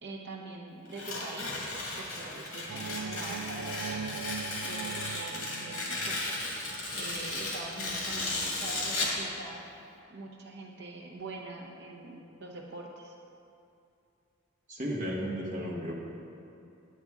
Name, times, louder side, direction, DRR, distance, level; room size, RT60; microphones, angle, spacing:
voice 1, 0.0-1.7 2.0-4.4 4.6-6.3 6.9-9.6 10.1-13.2, right 2 dB, 50° right, 0 dB, 0.8 m, -44 dB
Tearing, 0.9-9.2, left 2 dB, 75° left, 1.8 m, -35 dB
sound 1, 2.7-7.2, right 6 dB, 80° right, 0.4 m, -41 dB
voice 2, 14.7-15.9, equal, 35° right, -4 dB, 1.4 m, -34 dB
9.4 x 8.7 x 3.6 m, 2.6 s
head